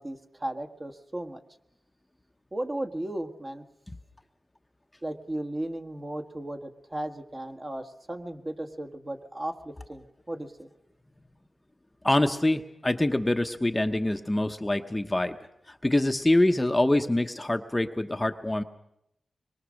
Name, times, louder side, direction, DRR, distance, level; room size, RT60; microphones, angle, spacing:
voice 1, 0.0-1.4 2.5-3.6 5.0-10.7, right 1 dB, 30° right, 4 dB, 1.7 m, -35 dB
voice 2, 12.0-15.4 15.8-18.6, left 1 dB, 15° left, 7 dB, 0.9 m, -25 dB
25.0 x 22.5 x 6.5 m, 0.82 s
wide cardioid pair, 80°, 0 cm